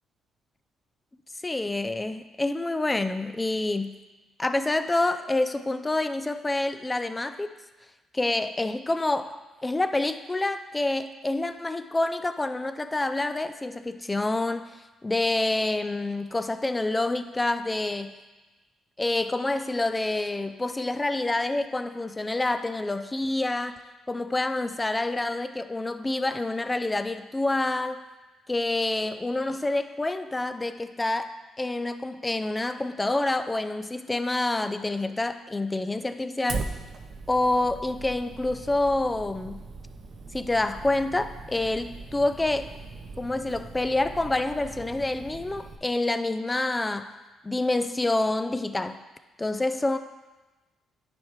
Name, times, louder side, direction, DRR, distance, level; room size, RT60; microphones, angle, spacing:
voice 1, 1.4-3.9 4.4-7.5 8.1-9.3 9.6-18.1 19.0-23.7 24.1-28.0 28.5-31.3 31.6-36.7 37.3-39.6 40.3-42.7 43.2-47.1 47.4-49.0 49.4-50.0, left 2 dB, 15° left, 10 dB, 0.3 m, -27 dB
Fire, 36.5-45.8, right 4 dB, 55° right, 0.7 m, -40 dB
10.5 x 4.5 x 3.2 m, 1.2 s
cardioid pair, 90°, 0 cm